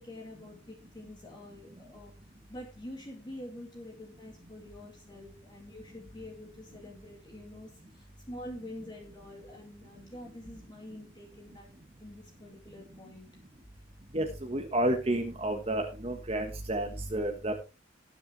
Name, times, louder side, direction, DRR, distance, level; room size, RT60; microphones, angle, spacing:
voice 1, 0.0-2.1 2.5-11.7 12.0-13.3, left 1 dB, 25° left, 0 dB, 2.4 m, -46 dB
voice 2, 14.1-17.6, right 1 dB, 30° right, 4 dB, 1.5 m, -31 dB
19.5 x 7.0 x 3.4 m, 0.30 s
head